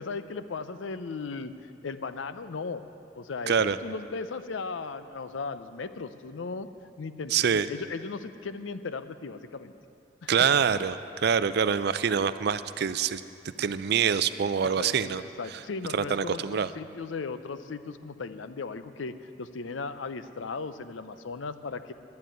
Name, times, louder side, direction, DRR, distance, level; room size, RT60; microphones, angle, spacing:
voice 1, 0.0-1.5 1.8-2.8 3.1-6.7 7.0-9.7 10.2-10.4 14.6-21.9, left 4 dB, 85° left, 12 dB, 0.6 m, -37 dB
voice 2, 3.5-3.8 7.3-7.7 10.3-13.2 13.6-15.2 15.5-15.6 15.9-16.7, right 7 dB, 55° right, 13 dB, 0.4 m, -25 dB
10.5 x 10.0 x 9.2 m, 2.7 s
head